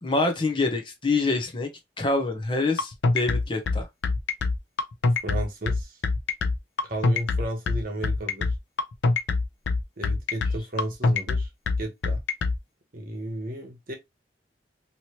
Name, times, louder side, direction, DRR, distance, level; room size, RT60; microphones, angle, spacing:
voice 1, 0.0-1.7 2.0-3.9, left 3 dB, 25° left, 0.6 m, -26 dB
sound 1, 2.8-12.6, left 3 dB, 85° left, 0.5 m, -24 dB
voice 2, 5.2-6.0 6.8-8.5 10.0-11.5 11.8-12.2 12.9-13.9, right 1 dB, 50° right, 0.9 m, -33 dB
3.0 x 2.8 x 2.9 m
head